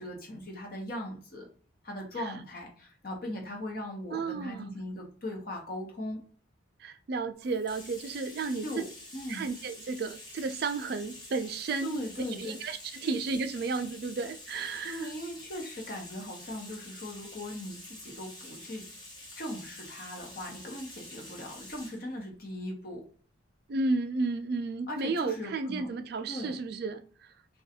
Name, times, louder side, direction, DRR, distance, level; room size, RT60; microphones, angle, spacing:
voice 1, 0.0-1.5 1.8-6.2 8.6-8.9 9.1-9.5 11.8-12.6 14.8-18.8 19.4-23.0 24.9-25.9 26.3-26.6, left 1 dB, 50° left, 0.8 m, -39 dB
voice 2, 4.1-4.8 6.8-8.9 9.3-12.0 12.4-15.1 23.7-27.0, right 3 dB, 50° right, 0.3 m, -33 dB
Bathtub (filling or washing), 7.4-22.0, left 1 dB, 20° left, 1.1 m, -48 dB
2.5 x 2.3 x 4.0 m
head